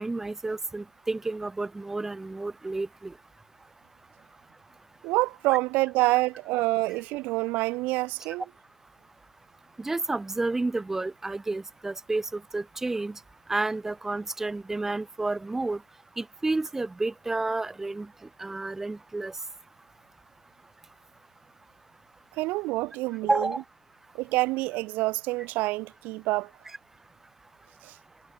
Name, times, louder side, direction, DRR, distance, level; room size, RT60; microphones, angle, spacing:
voice 1, 0.0-3.1 9.8-13.2 13.5-15.8 16.2-18.1 18.4-19.4 23.3-23.6, right 2 dB, 10° right, 5.8 m, -30 dB
voice 2, 5.0-8.4 22.3-23.5 24.2-26.5 27.8-28.0, right 21 dB, 60° right, 2.7 m, -27 dB
hypercardioid pair, 95°, 3 cm